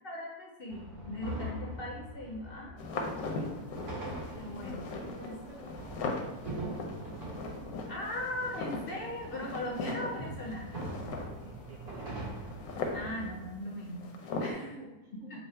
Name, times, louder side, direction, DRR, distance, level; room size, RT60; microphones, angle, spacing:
voice 1, 0.0-2.8 3.1-3.6 4.4-4.8 5.3-5.4 7.9-10.8 12.9-14.7 15.3-15.4, left 1 dB, 60° left, -1 dB, 0.6 m, -39 dB
sound 1, 0.7-13.4, right 1 dB, 80° right, 1.7 m, -43 dB
sound 2, 2.8-14.5, left 3 dB, 80° left, 1.1 m, -39 dB
voice 2, 4.3-7.2 7.5-7.9 11.4-12.5 14.4-15.3, right 2 dB, 60° right, -2 dB, 1.0 m, -51 dB
5.3 x 2.0 x 4.4 m, 0.97 s
omnidirectional pair, 1.6 m